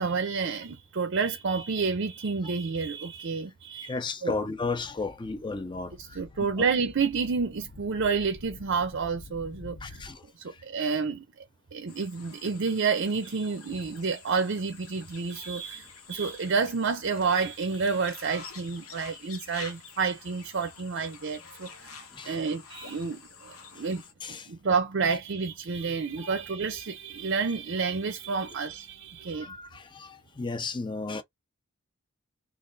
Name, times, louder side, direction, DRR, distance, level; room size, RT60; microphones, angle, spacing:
voice 1, 0.0-3.9 4.2-4.3 6.0-10.0 10.4-11.2 11.7-22.0 22.3-24.0 24.3-29.5, right 5 dB, 55° right, 0.5 m, -29 dB
voice 2, 3.8-6.2 9.8-10.6 22.1-22.4 23.7-23.8 24.2-24.5 29.3-31.2, left 3 dB, 20° left, 0.5 m, -34 dB
sound 1, 4.3-10.2, left 2 dB, 55° left, 0.7 m, -49 dB
sound 2, 11.9-24.1, left 5 dB, 80° left, 1.0 m, -48 dB
3.2 x 2.5 x 3.8 m
head